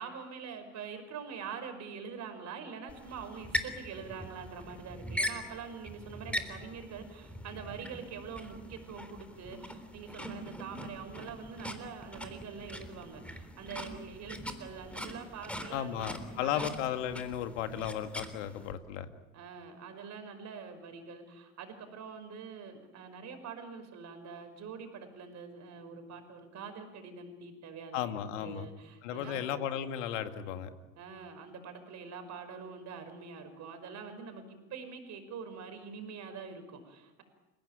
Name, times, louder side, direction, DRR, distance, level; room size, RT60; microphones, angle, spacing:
voice 1, 0.0-16.7 19.3-29.6 31.0-37.2, right 6 dB, 45° right, 8 dB, 5.6 m, -45 dB
sound 1, 2.9-18.7, equal, 5° left, 3.7 m, -41 dB
voice 2, 15.7-19.1 27.9-28.7 29.0-30.7, left 10 dB, 70° left, 8 dB, 2.2 m, -35 dB
29.5 x 17.0 x 9.2 m, 1.1 s
hypercardioid pair, 75°, 37 cm